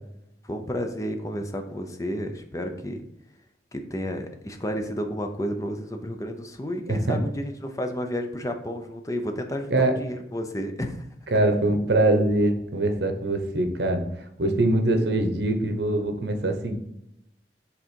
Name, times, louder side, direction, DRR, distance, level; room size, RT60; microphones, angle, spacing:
voice 1, 0.4-3.0 3.7-11.1 14.7-14.8, equal, 20° left, 5 dB, 0.6 m, -31 dB
voice 2, 6.9-7.2 9.7-9.9 11.3-14.1 14.4-16.8, right 2 dB, 75° right, 6 dB, 1.0 m, -23 dB
6.1 x 4.0 x 4.5 m, 0.83 s
head